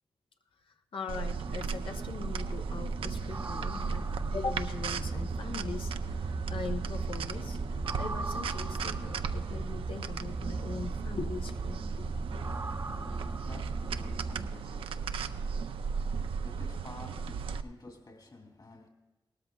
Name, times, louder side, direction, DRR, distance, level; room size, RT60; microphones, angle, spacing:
voice 1, 0.9-12.1, left 4 dB, 75° left, 0.9 m, -41 dB
sound 1, 1.1-17.6, right 6 dB, 85° right, 0.4 m, -36 dB
sound 2, 1.3-14.5, right 3 dB, 35° right, 0.6 m, -37 dB
voice 2, 12.9-18.9, left 2 dB, 50° left, 2.8 m, -51 dB
18.0 x 13.0 x 2.3 m
cardioid pair, 45°, 9 cm